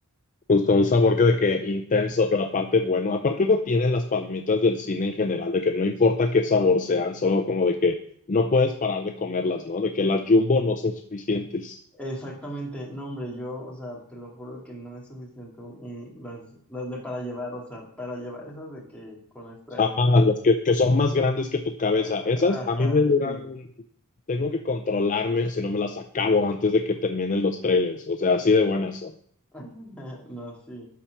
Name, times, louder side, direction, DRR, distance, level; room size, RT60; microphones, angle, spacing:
voice 1, 0.5-8.0 8.3-11.8 19.8-23.6 24.3-29.1, left 3 dB, 35° left, 6 dB, 0.5 m, -22 dB
voice 2, 11.9-20.3 21.8-23.4 29.5-30.9, equal, 5° left, -3 dB, 2.1 m, -38 dB
12.0 x 4.4 x 5.8 m, 0.63 s
head